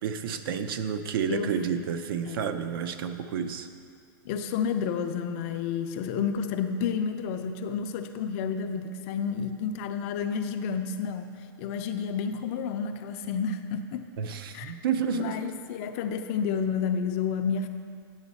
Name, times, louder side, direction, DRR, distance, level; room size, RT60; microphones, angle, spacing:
voice 1, 0.0-3.7 14.2-15.4, right 7 dB, 70° right, 9 dB, 0.6 m, -30 dB
voice 2, 1.3-1.8 2.3-2.4 4.3-14.1 14.5-14.7 15.1-17.7, left 6 dB, 40° left, 8 dB, 0.4 m, -30 dB
8.9 x 6.3 x 4.1 m, 2.3 s
supercardioid pair, 155°, 12 cm